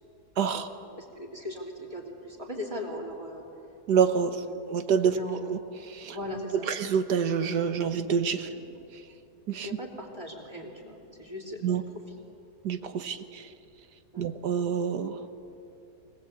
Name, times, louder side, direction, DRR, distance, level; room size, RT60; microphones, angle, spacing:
voice 1, 0.4-0.7 3.9-5.2 5.5-5.6 5.9-6.2 6.5-8.5 8.9-9.0 9.5-9.7 11.6-11.8 12.6-13.5 14.2-15.2, right 7 dB, 85° right, 9 dB, 1.7 m, -27 dB
voice 2, 1.0-3.4 4.4-4.6 5.1-5.4 6.0-6.7 8.4-8.6 9.6-11.7 12.9-13.0 14.1-14.2, left 1 dB, 20° right, 0 dB, 3.5 m, -38 dB
24.5 x 18.5 x 8.4 m, 2.8 s
omnidirectional pair, 1.7 m